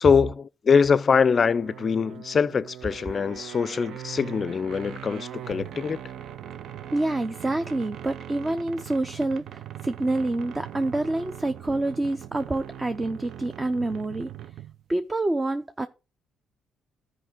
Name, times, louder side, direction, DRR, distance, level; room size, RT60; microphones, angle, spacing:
voice 1, 0.0-6.0, left 6 dB, 45° left, 0.4 m, -23 dB
sound 1, 1.4-14.8, right 11 dB, 70° right, 0.5 m, -41 dB
voice 2, 6.9-14.3 14.9-15.9, right 2 dB, 20° right, 0.5 m, -27 dB
13.5 x 5.0 x 3.7 m
cardioid pair, 90°, 0 cm